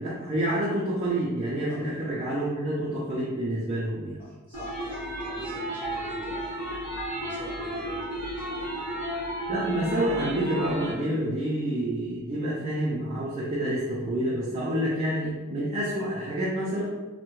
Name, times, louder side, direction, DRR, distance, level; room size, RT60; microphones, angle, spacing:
voice 1, 0.0-4.2 9.5-16.9, right 1 dB, 30° right, -6 dB, 0.4 m, -28 dB
voice 2, 4.2-8.9, right 1 dB, 10° left, -10 dB, 1.1 m, -46 dB
sound 1, 4.5-10.9, right 1 dB, 40° left, 1.4 m, -33 dB
3.3 x 2.1 x 3.0 m, 1.2 s
head